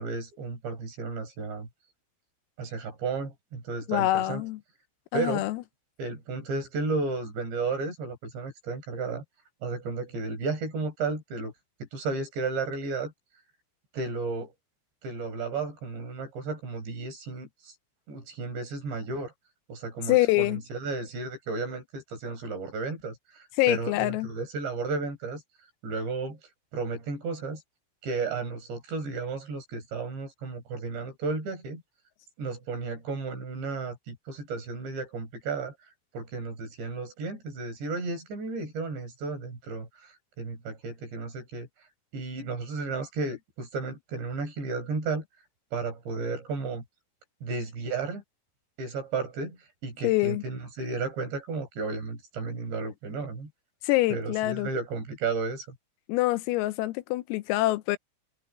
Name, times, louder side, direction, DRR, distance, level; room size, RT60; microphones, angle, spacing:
voice 1, 0.0-1.7 2.6-4.4 5.1-5.5 6.0-9.2 9.6-11.5 11.9-13.1 13.9-14.5 15.0-17.7 18.1-19.3 19.7-25.4 25.8-26.4 26.7-27.6 28.0-31.8 32.4-35.7 36.1-39.9 40.4-41.7 42.1-45.2 45.7-46.8 47.4-48.2 48.8-49.6 49.8-53.5 54.1-55.7, right 4 dB, 55° right, 7.1 m, -33 dB
voice 2, 3.9-4.6 5.1-5.6 20.1-20.6 23.6-24.3 50.0-50.4 53.8-54.7 56.1-58.0, left 18 dB, 85° left, 3.6 m, -25 dB
omnidirectional pair, 6.0 m